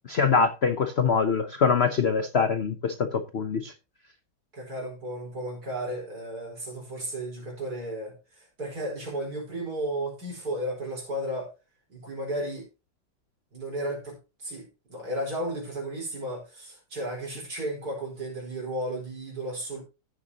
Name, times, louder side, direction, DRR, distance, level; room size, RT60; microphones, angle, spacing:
voice 1, 0.1-3.7, left 5 dB, 50° left, 0.8 m, -24 dB
voice 2, 4.5-11.5 11.9-12.7 13.5-19.8, right 1 dB, 55° right, 5.1 m, -34 dB
15.5 x 7.0 x 2.9 m
omnidirectional pair, 2.0 m